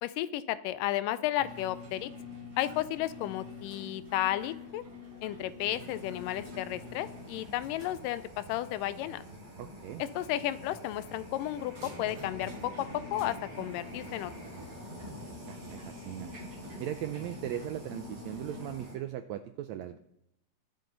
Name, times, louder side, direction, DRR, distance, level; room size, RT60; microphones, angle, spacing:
voice 1, 0.0-2.1 2.6-4.8 5.2-9.2 10.0-14.3, left 13 dB, 85° left, 14 dB, 2.2 m, -33 dB
sound 1, 1.4-18.7, left 4 dB, 45° right, 5.1 m, -49 dB
sound 2, 5.7-18.9, equal, 15° right, 6.0 m, -47 dB
voice 2, 9.6-10.0 15.5-16.3 16.8-20.0, right 12 dB, 85° right, 10 dB, 1.5 m, -38 dB
22.0 x 7.7 x 3.9 m, 0.80 s
omnidirectional pair, 3.8 m